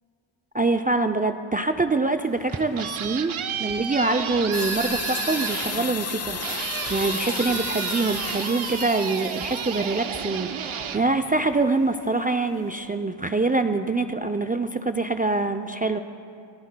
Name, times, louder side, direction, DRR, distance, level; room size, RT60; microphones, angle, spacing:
voice 1, 0.5-3.3 3.6-16.0, right 3 dB, 20° right, 7 dB, 0.4 m, -25 dB
sound 1, 1.7-1.9 2.4-2.7 3.0-3.3 3.7-4.6 4.9-5.2 5.6-5.8 6.2-6.5 6.8-7.1 7.5-7.7 8.1-8.4 8.7-9.0 9.4-9.6 10.1-10.4 10.8-11.0 11.5-11.7, right 2 dB, 45° right, 1.9 m, -48 dB
sound 2, 2.2-11.9, right 8 dB, 80° right, 0.8 m, -32 dB
sound 3, 4.5-9.9, left 5 dB, 30° left, 0.7 m, -33 dB
27.0 x 12.0 x 2.2 m, 2.6 s
cardioid pair, 50°, 48 cm